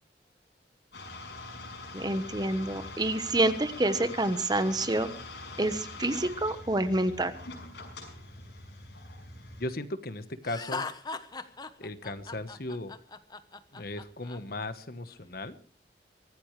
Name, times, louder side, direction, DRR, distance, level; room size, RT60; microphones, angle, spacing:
sound 1, 0.9-9.7, left 2 dB, 75° left, 5.8 m, -44 dB
voice 1, 1.9-5.1 5.6-7.3, right 1 dB, 25° right, 11 dB, 1.1 m, -27 dB
voice 2, 9.6-10.8 11.8-12.9 13.7-15.6, left 2 dB, 55° left, 11 dB, 1.2 m, -37 dB
Laughter, 10.4-14.4, left 4 dB, 25° left, 1.1 m, -39 dB
24.0 x 15.5 x 3.3 m, 0.38 s
head